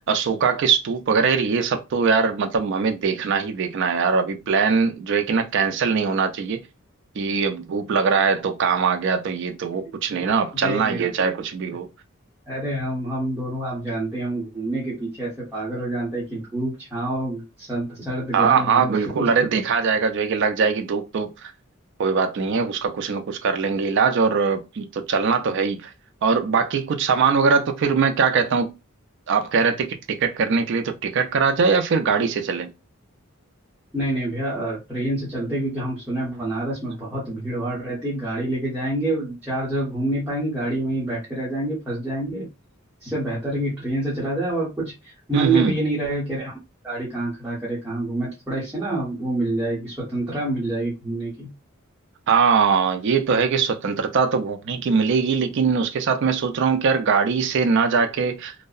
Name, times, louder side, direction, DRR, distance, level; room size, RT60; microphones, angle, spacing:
voice 1, 0.1-6.6 7.2-11.9 18.3-21.5 22.0-25.9 26.2-28.7 29.3-32.7 45.3-45.8 52.3-58.5, right 5 dB, 60° right, 0.4 m, -21 dB
voice 2, 10.6-11.0 12.5-19.3 33.9-42.5 43.0-46.6 46.8-51.5, right 1 dB, 10° right, 0.9 m, -27 dB
2.6 x 2.0 x 2.3 m
head